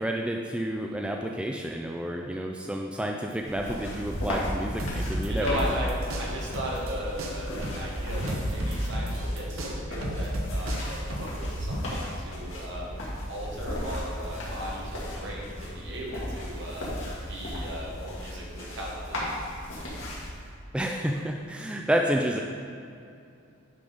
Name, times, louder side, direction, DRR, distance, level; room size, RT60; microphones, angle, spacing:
voice 1, 0.0-5.8 20.7-22.4, equal, 5° right, 1 dB, 0.3 m, -30 dB
sound 1, 3.4-20.3, equal, 65° left, 1.9 m, -36 dB
sound 2, 4.8-6.9 7.2-11.8, right 1 dB, 85° right, 1.0 m, -32 dB
voice 2, 5.3-5.9 6.2-13.0 13.3-16.9 17.3-19.2 19.7-19.9, equal, 60° right, -4 dB, 1.7 m, -37 dB
9.4 x 3.8 x 5.0 m, 2.5 s
head